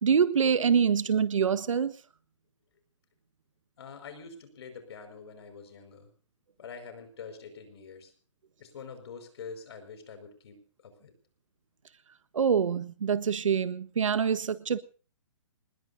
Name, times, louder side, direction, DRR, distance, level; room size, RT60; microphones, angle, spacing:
voice 1, 0.0-2.0 12.3-14.8, right 7 dB, 85° right, 1.4 m, -25 dB
voice 2, 3.8-6.1 6.6-8.1 8.6-11.1, left 5 dB, 55° left, 5.4 m, -45 dB
25.5 x 20.5 x 2.7 m
hypercardioid pair, 165°, 16 cm